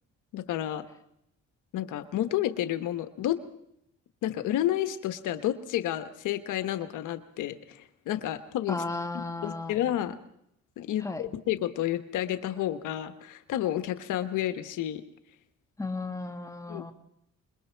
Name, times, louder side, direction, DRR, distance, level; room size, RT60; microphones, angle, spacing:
voice 1, 0.3-0.8 1.7-3.4 4.2-7.8 8.1-8.8 9.4-10.2 10.8-15.0 16.7-16.8, left 12 dB, 85° left, 10 dB, 1.2 m, -30 dB
voice 2, 8.7-9.8 11.0-11.2 15.8-16.9, left 3 dB, 10° left, 5 dB, 1.9 m, -34 dB
26.5 x 22.0 x 4.6 m, 0.75 s
cardioid pair, 90°, 30 cm